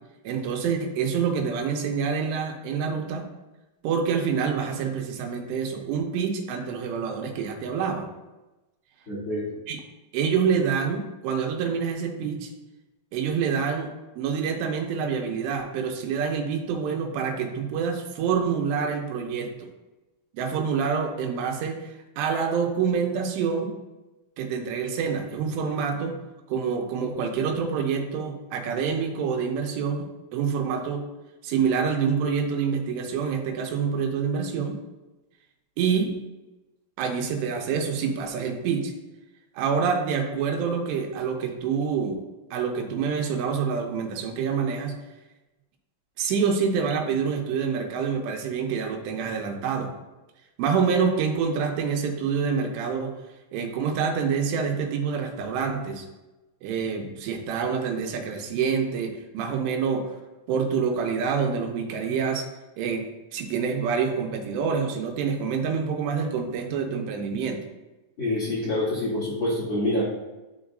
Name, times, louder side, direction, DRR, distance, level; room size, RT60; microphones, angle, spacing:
voice 1, 0.2-3.3 3.8-8.1 9.7-9.8 10.1-12.5 13.1-19.5 20.3-21.9 22.2-23.7 24.4-26.2 26.5-31.0 31.4-34.8 35.8-36.1 37.0-38.9 39.6-42.2 42.5-44.9 46.2-49.9 50.6-53.1 53.5-56.0 56.6-60.1 60.5-62.4 62.8-63.1 63.3-67.7, right 6 dB, 90° right, 3 dB, 2.8 m, -27 dB
voice 2, 9.1-9.4 68.2-70.0, left 1 dB, 35° left, -9 dB, 2.3 m, -26 dB
11.5 x 3.9 x 2.5 m, 1.1 s
omnidirectional pair, 5.0 m